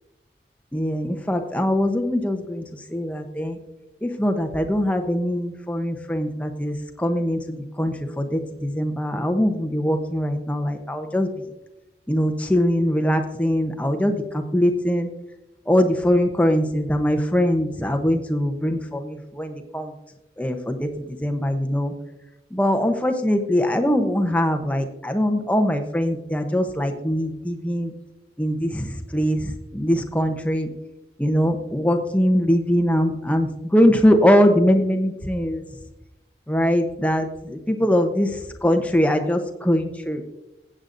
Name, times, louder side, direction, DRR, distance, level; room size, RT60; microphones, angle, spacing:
voice 1, 0.7-3.6 4.0-11.4 12.1-15.1 15.7-19.9 20.4-21.9 22.5-27.9 28.4-30.7 31.2-35.6 36.5-40.2, equal, 10° left, 6 dB, 0.7 m, -22 dB
15.5 x 8.6 x 2.5 m, 0.95 s
head